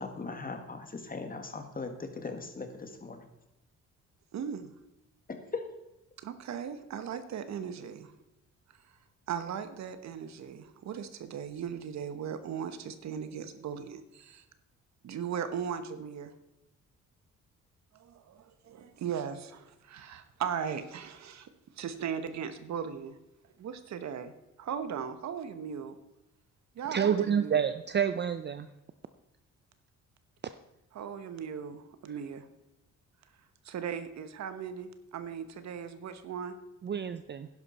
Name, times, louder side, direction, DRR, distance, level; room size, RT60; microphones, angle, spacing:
voice 1, 0.0-3.3 5.3-5.7, left 4 dB, 30° left, 6 dB, 1.9 m, -39 dB
voice 2, 4.3-4.7 6.2-8.2 9.3-14.4 15.0-16.3 17.9-21.5 21.8-23.2 23.6-24.3 24.6-26.0 26.7-27.6 30.9-32.5 33.6-36.6, right 7 dB, 65° right, 11 dB, 1.1 m, -38 dB
voice 3, 26.9-28.7 36.8-37.5, right 8 dB, 35° right, 11 dB, 0.5 m, -28 dB
11.0 x 11.0 x 4.2 m, 0.93 s
cardioid pair, 90°, 30 cm